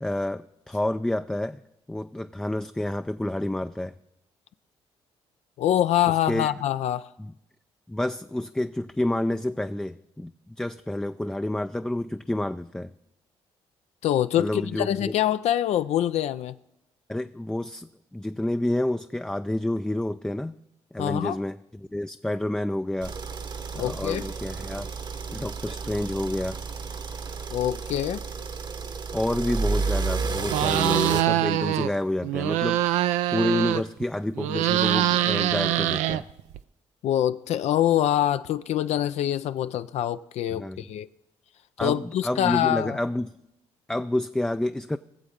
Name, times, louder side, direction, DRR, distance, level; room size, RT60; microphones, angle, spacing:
voice 1, 0.0-1.6 1.9-3.9 6.0-6.5 7.2-7.3 7.9-12.9 14.4-15.1 17.1-20.5 20.9-23.2 23.7-24.9 25.3-26.6 29.1-32.8 33.3-36.3 40.5-40.8 41.8-43.3 43.9-45.0, left 1 dB, 5° left, 0.3 m, -29 dB
voice 2, 5.6-7.1 14.0-16.5 21.0-21.4 23.8-24.2 27.5-28.2 37.0-41.1 41.8-43.0, left 11 dB, 70° left, 0.4 m, -25 dB
sound 1, 23.0-31.2, right 4 dB, 40° right, 0.9 m, -31 dB
sound 2, 30.5-31.9 32.2-34.0 34.3-36.6, right 14 dB, 85° right, 0.4 m, -24 dB
19.5 x 7.1 x 5.1 m
supercardioid pair, 65°, 12 cm